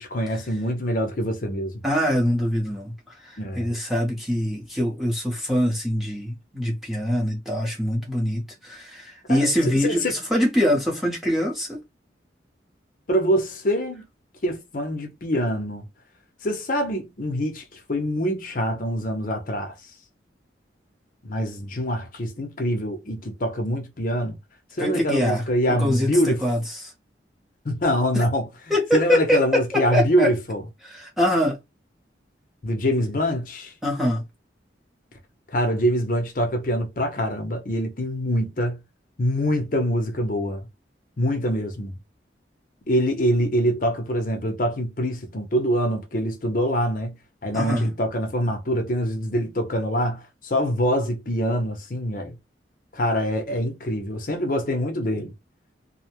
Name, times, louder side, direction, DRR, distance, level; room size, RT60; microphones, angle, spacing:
voice 1, 0.0-1.8 3.4-3.7 9.3-9.5 9.8-10.1 13.1-14.0 14.4-15.8 16.4-19.7 21.2-24.4 24.8-26.4 27.6-28.4 28.9-30.6 32.6-33.7 35.5-38.8 39.2-40.7 41.2-41.9 42.9-47.2 47.4-52.3 52.9-55.3, equal, 45° left, 0.7 m, -24 dB
voice 2, 1.8-11.8 24.8-25.4 25.7-26.9 28.1-28.2 28.7-30.3 30.8-31.6 33.8-34.2 47.5-47.9, equal, ahead, 0.8 m, -24 dB
2.7 x 2.1 x 2.9 m
head